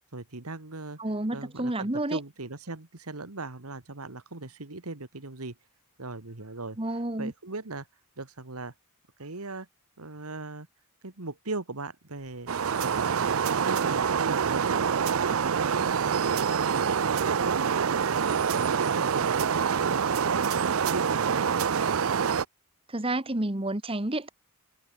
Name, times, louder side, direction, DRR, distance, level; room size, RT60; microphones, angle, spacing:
voice 1, 0.1-1.0 1.3-5.6 6.0-7.9 8.2-8.7 9.2-9.7 10.0-10.7 11.0-12.5 12.8-15.1 15.4-16.1 16.3-18.2 18.6-21.6, right 3 dB, 85° right, 1.9 m, -39 dB
voice 2, 1.0-2.2 6.8-7.3 22.9-24.3, right 1 dB, 25° right, 1.4 m, -30 dB
sound 1, 12.1-21.2, right 3 dB, 55° right, 6.9 m, -61 dB
sound 2, 12.5-22.4, right 7 dB, 70° right, 0.5 m, -26 dB
head